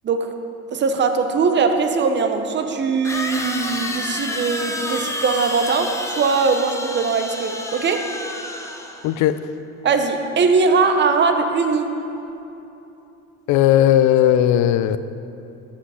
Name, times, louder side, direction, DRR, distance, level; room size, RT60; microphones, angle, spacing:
voice 1, 0.7-8.0 9.8-11.9, right 4 dB, 35° right, 6 dB, 0.7 m, -20 dB
sound 1, 1.4-1.5 3.0-9.2, left 1 dB, 10° left, 0.7 m, -29 dB
voice 2, 9.0-9.4 13.5-15.0, left 11 dB, 65° left, 13 dB, 0.4 m, -16 dB
8.0 x 5.9 x 5.6 m, 2.9 s
cardioid pair, 110°, 32 cm